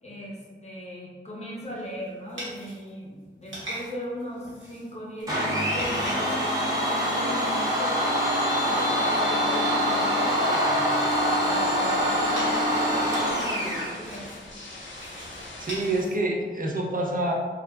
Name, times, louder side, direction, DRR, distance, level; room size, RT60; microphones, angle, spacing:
voice 1, 0.0-8.0 8.5-10.9 11.4-14.3, equal, 35° left, -5 dB, 0.8 m, -38 dB
sound 1, 1.6-7.2 7.7-8.3 8.6-16.6, right 1 dB, 75° right, 1.0 m, -43 dB
Domestic sounds home sounds, 5.3-13.9, equal, 15° right, 0.9 m, -24 dB
sound 2, 11.0-16.1, left 2 dB, 70° left, 0.5 m, -44 dB
voice 2, 15.6-17.3, right 2 dB, 45° right, -1 dB, 0.5 m, -27 dB
2.3 x 2.1 x 3.5 m, 1.4 s
wide cardioid pair, 75°, 20 cm